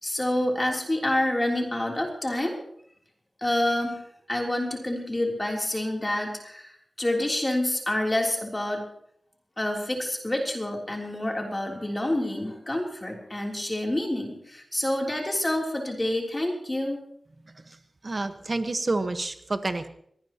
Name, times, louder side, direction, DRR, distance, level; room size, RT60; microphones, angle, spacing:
voice 1, 0.0-2.6 3.4-4.0 4.3-8.8 9.6-17.0, left 1 dB, 20° left, 0 dB, 3.3 m, -28 dB
voice 2, 18.0-19.9, right 2 dB, 45° right, 8 dB, 1.2 m, -28 dB
22.5 x 18.0 x 3.0 m, 0.70 s
wide cardioid pair, 80°, 0 cm